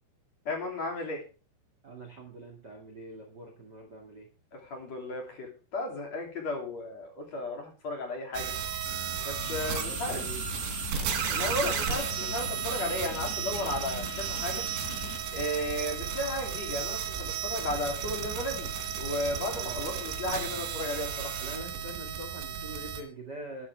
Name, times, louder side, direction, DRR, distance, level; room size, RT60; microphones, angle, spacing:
voice 1, 0.5-1.2 4.5-8.5 9.2-10.2 11.3-14.6 15.3-21.3, left 1 dB, 40° left, 1 dB, 3.9 m, -34 dB
voice 2, 1.8-4.3 9.8-10.4 19.5-20.1 21.4-23.7, right 2 dB, 35° right, 3 dB, 1.8 m, -44 dB
sound 1, 8.3-23.0, right 7 dB, 85° right, 4.7 m, -34 dB
sound 2, 9.4-15.2, left 5 dB, 70° left, 1.5 m, -42 dB
14.0 x 11.5 x 3.5 m, 0.35 s
omnidirectional pair, 5.1 m